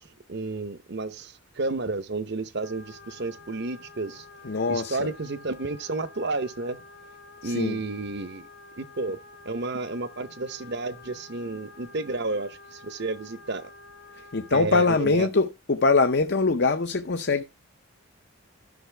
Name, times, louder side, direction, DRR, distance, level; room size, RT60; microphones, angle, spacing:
voice 1, 0.0-6.8 7.4-8.5 8.8-9.2 9.4-13.7 14.5-15.3, right 3 dB, 50° right, 0.8 m, -31 dB
sound 1, 2.6-14.5, left 3 dB, 80° left, 1.9 m, -49 dB
voice 2, 4.4-5.1 7.4-7.8 14.3-17.4, left 3 dB, 50° left, 0.7 m, -23 dB
13.0 x 6.6 x 3.3 m
head